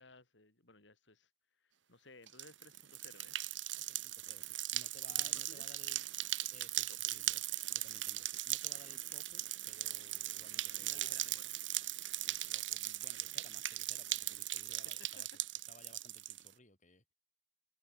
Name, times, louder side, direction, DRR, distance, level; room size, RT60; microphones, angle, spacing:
voice 1, 0.0-3.4 5.2-5.7 6.9-7.1 10.7-11.5 14.7-14.8, left 3 dB, 75° left, 3.9 m, -59 dB
sound 1, 2.3-16.5, right 14 dB, 80° right, 2.4 m, -39 dB
voice 2, 3.7-6.1 6.5-7.4 7.7-11.2 12.2-15.3 15.7-17.1, left 2 dB, 40° left, 6.2 m, -60 dB
head